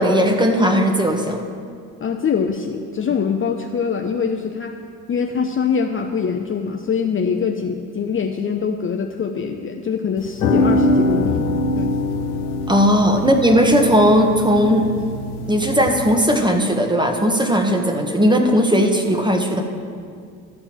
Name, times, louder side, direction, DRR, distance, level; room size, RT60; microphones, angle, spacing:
voice 1, 0.0-1.4 12.7-14.9 15.5-19.6, equal, 10° right, 4 dB, 1.3 m, -17 dB
voice 2, 2.0-4.8 5.1-11.4 11.8-11.9, left 6 dB, 30° left, 4 dB, 0.7 m, -23 dB
sound 1, 10.2-16.1, left 2 dB, 90° left, 0.9 m, -23 dB
13.0 x 4.4 x 7.6 m, 2.2 s
hypercardioid pair, 65°, 43 cm